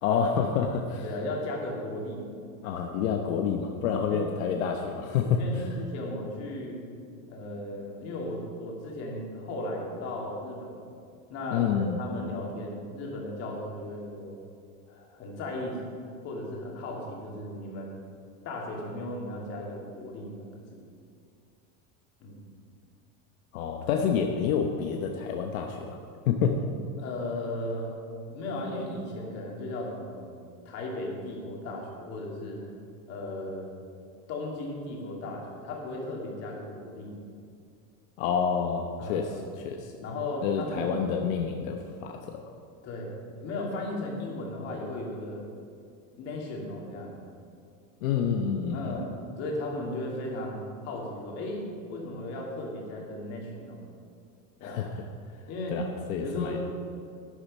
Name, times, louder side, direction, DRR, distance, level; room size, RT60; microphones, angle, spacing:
voice 1, 0.0-1.0 2.6-5.4 11.5-12.0 23.5-26.0 26.3-26.6 38.2-39.3 39.6-39.9 40.4-42.4 48.0-49.0 54.6-55.1 55.7-56.6, left 7 dB, 75° left, 3 dB, 1.1 m, -28 dB
voice 2, 1.0-2.3 4.1-4.2 5.3-6.8 7.3-10.8 11.3-14.4 14.9-15.8 16.2-18.0 18.4-20.8 22.2-22.5 27.0-28.0 28.3-30.3 30.6-32.6 33.1-33.7 34.3-37.2 39.0-39.3 40.0-41.1 42.8-45.4 46.2-47.2 48.7-49.1 49.4-51.6 51.9-53.8 54.6-54.8 55.5-55.8 56.2-56.6, left 1 dB, 40° left, -2 dB, 2.7 m, -36 dB
11.5 x 10.5 x 5.5 m, 2.3 s
supercardioid pair, 165°, 41 cm